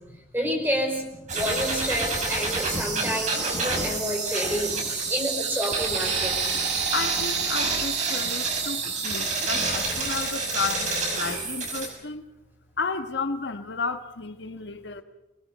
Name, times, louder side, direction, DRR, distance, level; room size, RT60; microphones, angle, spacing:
voice 1, 0.3-1.0 1.3-6.3, equal, 10° right, 5.2 m, -29 dB
sound 1, 1.3-11.9, right 3 dB, 40° right, 6.4 m, -28 dB
sound 2, 3.8-10.6, right 10 dB, 85° right, 1.3 m, -33 dB
voice 2, 6.9-12.2 12.8-15.0, left 4 dB, 80° left, 1.3 m, -33 dB
25.5 x 20.0 x 7.3 m
head